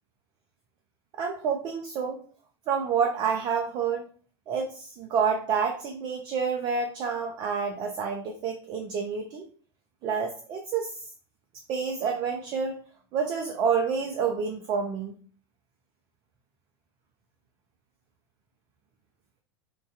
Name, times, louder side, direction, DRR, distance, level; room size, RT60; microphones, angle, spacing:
voice 1, 1.2-2.2 2.7-4.1 4.5-9.5 10.0-11.1 11.7-12.8 13.1-15.1, right 6 dB, 30° right, 2 dB, 0.4 m, -28 dB
2.4 x 2.3 x 3.8 m, 0.42 s
figure-of-eight pair, 85°, 14 cm